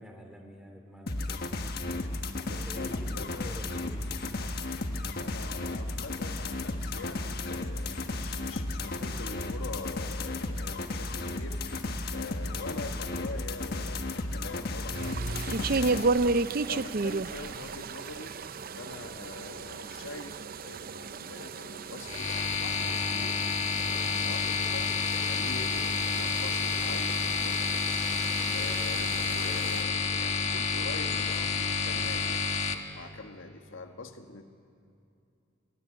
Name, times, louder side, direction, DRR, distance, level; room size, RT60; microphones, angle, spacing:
voice 1, 0.0-1.6 2.4-4.4, equal, 5° right, 3 dB, 2.9 m, -47 dB
sound 1, 1.1-16.1, left 2 dB, 50° left, 1.4 m, -34 dB
voice 2, 2.5-3.6 4.3-4.8 5.2-11.6 12.1-16.0 16.6-18.4 18.7-22.3 22.6-23.5 24.0-28.0 28.5-32.5 32.9-34.4, left 3 dB, 75° left, 5 dB, 1.5 m, -44 dB
sound 2, 14.9-29.8, right 3 dB, 45° right, 0.6 m, -34 dB
sound 3, 22.0-32.7, left 5 dB, 35° left, 1.4 m, -29 dB
23.5 x 17.5 x 10.0 m, 2.6 s
head